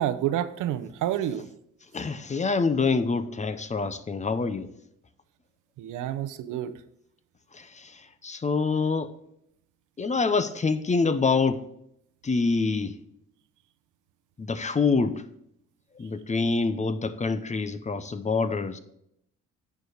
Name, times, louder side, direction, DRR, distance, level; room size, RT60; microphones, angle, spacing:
voice 1, 0.0-1.5 5.8-6.8, right 11 dB, 85° right, 0.7 m, -29 dB
voice 2, 1.9-4.7 7.5-9.1 10.0-11.7 12.2-13.0 14.4-15.3 15.9-18.8, left 4 dB, 25° left, 0.6 m, -26 dB
9.3 x 4.7 x 5.0 m
cardioid pair, 90°, 30 cm